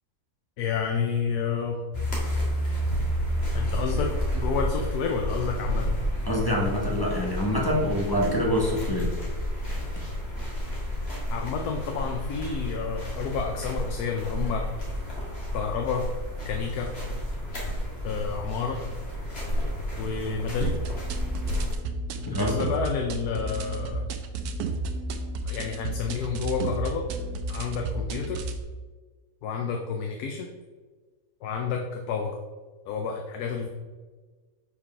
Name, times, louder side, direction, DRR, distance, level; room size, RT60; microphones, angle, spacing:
voice 1, 0.6-1.8 3.5-6.0 11.3-14.6 15.5-16.0 16.4-16.9 18.0-18.8 20.0-20.7 22.4-24.0 25.4-27.1 27.5-28.5 29.4-30.5 31.4-32.3 32.9-33.7, left 5 dB, 85° left, 2 dB, 1.2 m, -30 dB
sound 1, 1.9-21.7, equal, 40° left, 1.9 m, -31 dB
voice 2, 6.3-9.2 22.3-22.6, equal, 15° left, -2 dB, 1.1 m, -25 dB
sound 2, 20.6-28.6, right 2 dB, 80° right, 1.2 m, -32 dB
5.2 x 4.9 x 5.5 m, 1.4 s
omnidirectional pair, 1.6 m